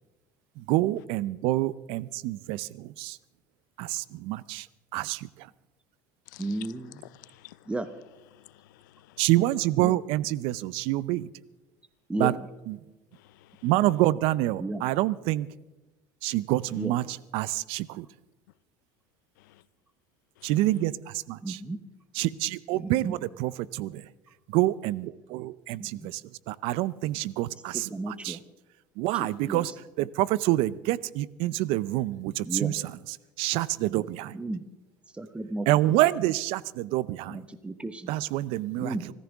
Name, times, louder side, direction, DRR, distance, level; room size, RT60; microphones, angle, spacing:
voice 1, 0.6-3.2 3.8-4.7 4.9-5.5 9.2-11.3 12.2-12.3 12.7-12.8 13.6-15.5 16.2-17.0 17.3-18.1 20.4-20.9 21.3-21.6 22.2-24.1 24.5-26.2 26.5-28.4 29.0-29.7 30.0-32.8 33.4-34.3 35.7-37.4 38.1-38.9, right 16 dB, 70° right, 19 dB, 0.6 m, -27 dB
voice 2, 6.4-7.0 7.7-7.9 9.8-10.0 12.1-12.5 14.6-14.8 16.7-17.0 21.4-21.8 22.8-23.1 25.8-26.1 27.5-28.4 29.1-29.7 32.4-32.8 34.3-34.6 35.1-36.0 37.3-38.1 38.8-39.1, right 2 dB, 10° right, 10 dB, 1.0 m, -34 dB
voice 3, 7.2-7.7 8.3-9.2 13.1-13.7 19.4-19.6 20.4-20.5, left 16 dB, 90° left, 18 dB, 0.6 m, -54 dB
25.0 x 14.5 x 3.6 m, 1.1 s
supercardioid pair, 100°, 10 cm